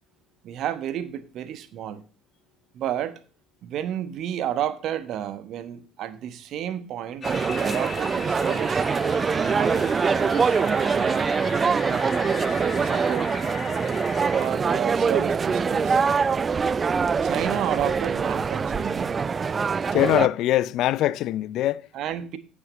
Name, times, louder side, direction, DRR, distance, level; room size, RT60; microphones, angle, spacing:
voice 1, 0.4-2.1 2.7-3.2 3.6-8.9 9.3-11.2 11.6-13.3 14.3-16.0 17.2-19.2 21.9-22.4, right 10 dB, 55° right, 1.1 m, -31 dB
sound 1, 7.2-14.5, left 5 dB, 30° left, 2.6 m, -38 dB
sound 2, 7.2-20.3, right 5 dB, 35° right, 0.4 m, -24 dB
voice 2, 19.9-21.8, left 14 dB, 60° left, 0.4 m, -22 dB
15.0 x 7.5 x 3.1 m
figure-of-eight pair, 55°, 0 cm